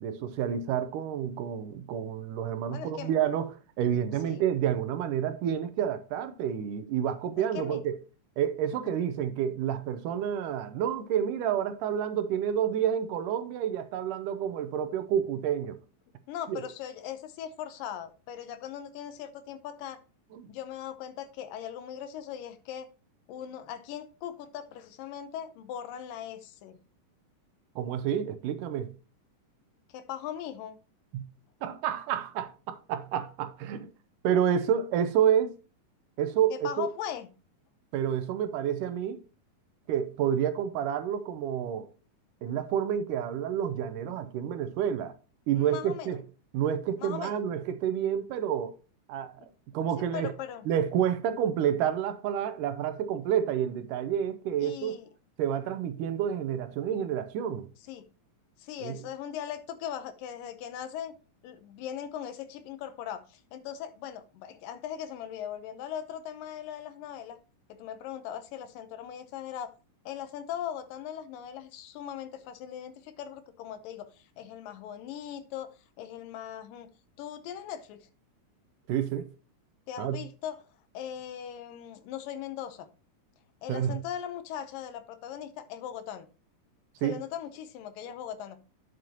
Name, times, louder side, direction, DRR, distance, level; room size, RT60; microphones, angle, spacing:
voice 1, 0.0-3.5 3.8-7.9 8.4-15.8 16.5-16.6 20.3-20.5 27.8-28.9 31.1-31.2 31.6-33.9 34.2-35.5 36.2-36.9 37.9-39.2 39.9-41.9 42.4-45.1 45.5-46.2 46.5-48.7 49.1-49.5 49.7-50.3 50.7-55.0 55.4-57.7 58.8-59.0 78.9-79.3 80.0-80.2 83.7-84.0 87.0-87.2, right 9 dB, 75° right, 2.2 m, -29 dB
voice 2, 2.7-3.1 4.3-4.4 7.4-7.8 16.3-20.0 20.5-22.9 23.3-26.8 29.9-30.8 36.5-37.3 45.5-46.2 47.0-47.5 49.4-49.5 50.1-50.7 54.6-55.1 57.9-58.0 58.6-61.1 61.4-67.4 67.7-69.7 70.1-76.9 77.2-78.0 79.9-80.6 80.9-82.9 83.6-86.3 87.0-88.6, left 9 dB, 80° left, 2.4 m, -39 dB
9.2 x 7.7 x 2.8 m
omnidirectional pair, 3.9 m